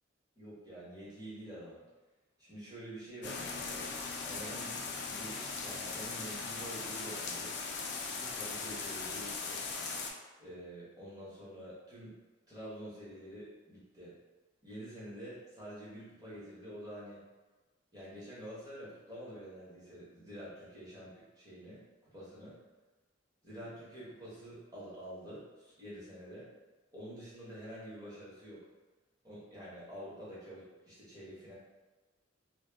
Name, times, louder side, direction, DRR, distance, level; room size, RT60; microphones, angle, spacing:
voice 1, 0.4-1.8 2.4-3.9 4.2-4.7 5.0-7.5 8.1-9.6 10.4-12.1 12.5-14.1 14.6-17.2 17.9-21.8 22.1-22.6 23.4-26.5 26.9-28.6 29.2-31.5, equal, 20° right, -9 dB, 0.9 m, -47 dB
Dorf Regen Auto Stark, 3.2-10.1, left 4 dB, 55° left, 0.4 m, -39 dB
2.2 x 2.1 x 3.3 m, 1.2 s
head